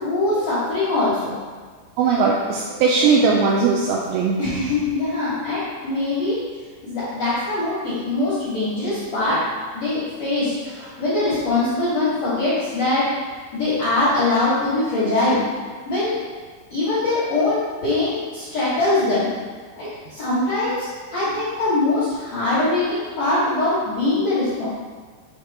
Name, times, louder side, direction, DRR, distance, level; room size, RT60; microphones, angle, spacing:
voice 1, 0.0-1.4 4.4-6.4 6.8-9.4 9.7-10.5 10.8-13.1 13.5-15.4 15.9-16.2 16.7-19.3 19.8-24.7, left 2 dB, 60° left, -14 dB, 1.7 m, -22 dB
voice 2, 2.0-4.4, right 4 dB, 85° right, -2 dB, 2.6 m, -19 dB
7.5 x 2.8 x 5.0 m, 1.5 s
omnidirectional pair, 5.6 m